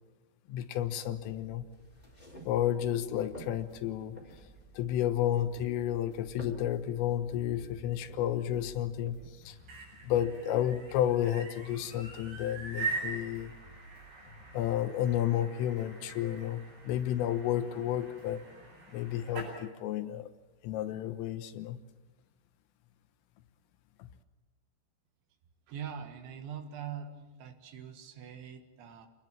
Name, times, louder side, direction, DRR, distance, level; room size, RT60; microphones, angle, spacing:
voice 1, 0.5-1.7 2.5-4.2 4.8-9.2 9.5-9.6 10.0-13.5 14.5-18.5 18.9-20.3 20.6-21.8 24.0-24.1, left 11 dB, 80° left, 10 dB, 3.7 m, -31 dB
sound 1, 1.2-9.3, right 1 dB, 10° left, 3.6 m, -52 dB
sound 2, 3.7-15.5 15.8-18.5, equal, 55° left, 4.8 m, -57 dB
sound 3, 9.4-19.6, right 4 dB, 55° right, 9.9 m, -43 dB
voice 2, 25.7-29.1, right 8 dB, 70° right, 7 dB, 3.8 m, -43 dB
28.5 x 21.0 x 7.6 m, 1.2 s
omnidirectional pair, 5.9 m